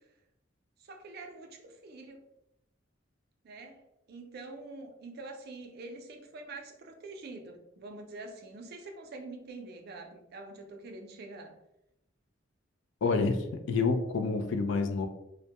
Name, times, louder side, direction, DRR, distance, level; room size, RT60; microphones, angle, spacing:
voice 1, 0.8-2.2 3.4-11.6, right 3 dB, 55° right, 3 dB, 0.4 m, -45 dB
voice 2, 13.0-15.1, left 4 dB, 70° left, 7 dB, 0.3 m, -28 dB
2.1 x 2.1 x 2.8 m, 0.85 s
head